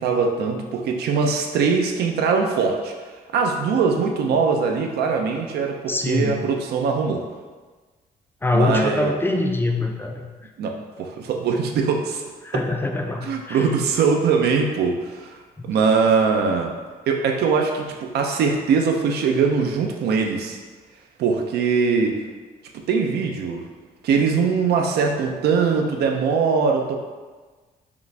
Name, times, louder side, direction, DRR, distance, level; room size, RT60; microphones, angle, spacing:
voice 1, 0.0-2.9 3.3-7.2 8.5-9.1 10.6-12.2 13.2-15.4 15.6-16.7 17.1-20.6 21.2-22.2 22.9-23.6 24.0-27.0, right 5 dB, 80° right, 2 dB, 0.6 m, -21 dB
voice 2, 5.9-6.4 8.4-10.2 12.4-13.7, left 2 dB, 15° left, 3 dB, 0.4 m, -23 dB
5.0 x 2.5 x 3.3 m, 1.4 s
cardioid pair, 120°, 16 cm